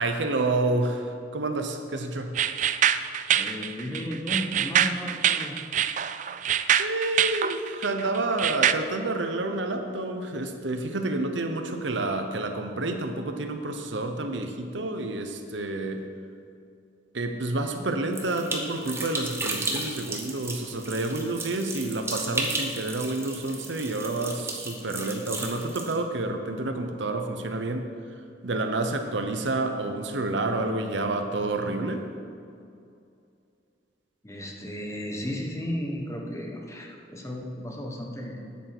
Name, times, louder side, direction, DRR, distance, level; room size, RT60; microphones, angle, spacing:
voice 1, 0.0-2.3 6.8-16.0 17.1-27.9 28.4-32.0, right 2 dB, 80° right, 6 dB, 0.9 m, -29 dB
sound 1, 2.4-8.7, right 9 dB, 40° right, 0.3 m, -24 dB
voice 2, 3.3-5.6 34.2-38.4, equal, 15° left, 0 dB, 1.2 m, -34 dB
sound 2, 18.1-26.0, right 2 dB, 15° right, 1.0 m, -34 dB
9.4 x 8.4 x 6.0 m, 2.5 s
head